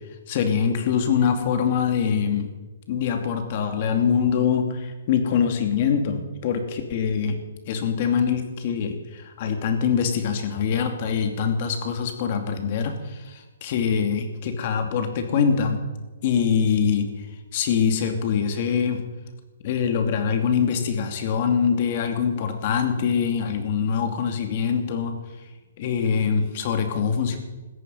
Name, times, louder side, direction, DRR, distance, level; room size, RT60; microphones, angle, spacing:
voice 1, 0.3-2.5 2.9-7.4 7.7-15.8 16.2-17.1 17.5-19.0 19.6-25.2 25.8-27.4, left 7 dB, 40° left, 6 dB, 2.6 m, -24 dB
17.5 x 14.0 x 5.6 m, 1.2 s
hypercardioid pair, 160°, 0 cm